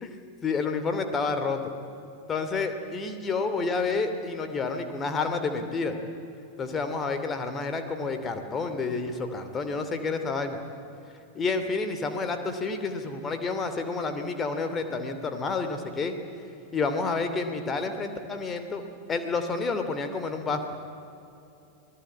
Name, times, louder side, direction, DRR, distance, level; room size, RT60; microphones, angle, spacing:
voice 1, 0.4-1.7 2.3-6.0 6.6-10.6 11.3-16.2 16.7-18.8 19.1-20.8, left 4 dB, 20° left, 7 dB, 2.8 m, -29 dB
27.0 x 19.0 x 8.7 m, 2.8 s
figure-of-eight pair, 90°, 0 cm